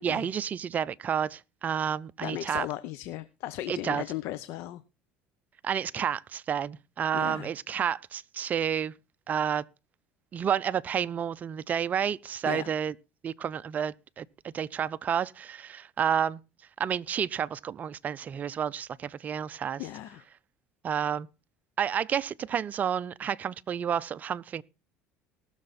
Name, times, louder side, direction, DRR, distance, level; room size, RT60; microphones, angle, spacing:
voice 1, 0.0-2.7 3.7-4.0 5.6-8.9 9.3-9.6 10.3-12.9 13.2-16.4 16.8-19.8 20.8-21.3 21.8-24.6, right 8 dB, 35° right, 0.5 m, -30 dB
voice 2, 2.2-4.8 7.1-7.5 12.4-12.7 19.8-20.2, left 14 dB, 70° left, 0.7 m, -36 dB
19.0 x 6.5 x 4.2 m
supercardioid pair, 100°, 5 cm